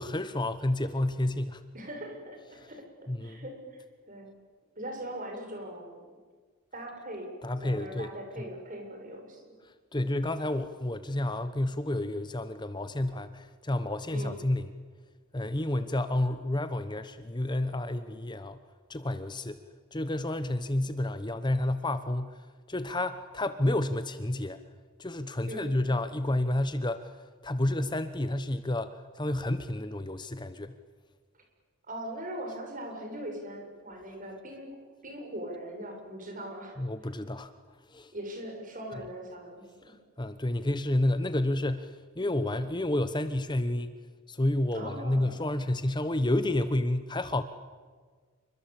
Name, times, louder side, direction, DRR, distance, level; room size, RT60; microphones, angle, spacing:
voice 1, 0.0-1.6 2.5-2.6 3.1-3.5 7.4-8.1 8.4-8.5 9.9-14.8 15.3-18.6 18.9-19.6 19.9-24.6 25.0-27.2 27.4-30.8 36.8-37.5 37.9-38.1 39.9-43.9 44.3-47.4, left 1 dB, 20° left, 11 dB, 1.0 m, -30 dB
voice 2, 1.7-2.4 2.7-4.3 4.8-6.0 6.7-7.3 7.6-9.4 14.1-14.3 25.4-25.7 31.9-36.8 38.1-39.9 44.7-45.4, right 1 dB, 40° right, 3 dB, 7.5 m, -40 dB
27.5 x 24.5 x 8.6 m, 1.5 s
head